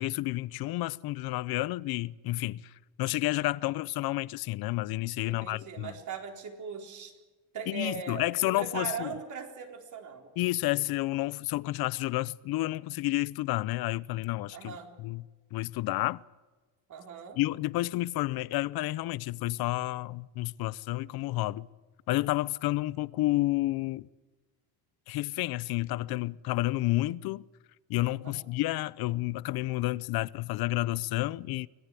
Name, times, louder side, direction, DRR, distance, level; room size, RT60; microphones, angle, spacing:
voice 1, 0.0-2.6 3.0-5.9 7.7-9.1 10.4-15.2 15.5-16.2 17.4-21.7 22.1-24.1 25.1-27.5 27.9-31.7, left 18 dB, 50° left, 0.7 m, -30 dB
voice 2, 5.3-7.1 7.5-10.3 14.5-15.0 16.9-17.4 28.2-28.4, right 6 dB, 40° right, 4.1 m, -39 dB
25.5 x 19.0 x 8.4 m
cardioid pair, 135°, 46 cm